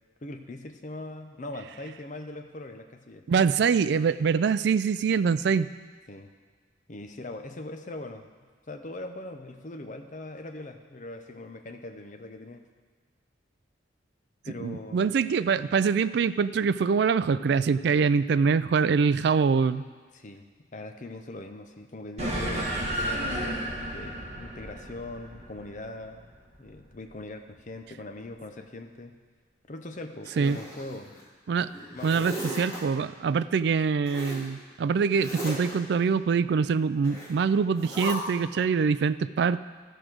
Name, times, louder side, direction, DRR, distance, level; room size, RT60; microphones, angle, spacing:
voice 1, 0.2-3.2 6.1-6.3 6.9-8.3 8.7-12.6 14.4-15.1 20.1-22.7 23.0-29.1 29.7-31.2 31.9-32.4, left 2 dB, 40° left, 5 dB, 0.7 m, -41 dB
voice 2, 3.3-5.7 14.6-19.8 30.4-30.6 31.5-31.7 32.0-39.6, right 5 dB, 60° right, 14 dB, 0.3 m, -24 dB
sound 1, 22.2-26.9, right 1 dB, 35° right, 1.7 m, -33 dB
Zipper (clothing), 30.2-31.2 31.7-32.8 34.0-34.5 35.1-35.7 37.0-37.3 37.7-38.1, equal, 15° left, 2.2 m, -37 dB
14.0 x 5.0 x 6.1 m, 1.5 s
head